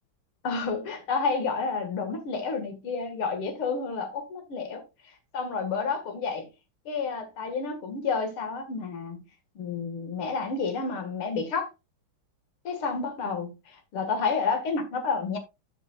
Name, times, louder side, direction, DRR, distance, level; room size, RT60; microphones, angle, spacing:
voice 1, 0.4-4.8 5.3-6.5 6.9-9.2 9.6-11.7 12.6-15.4, left 4 dB, 85° left, 2.8 m, -30 dB
11.5 x 6.8 x 2.4 m
omnidirectional pair, 2.3 m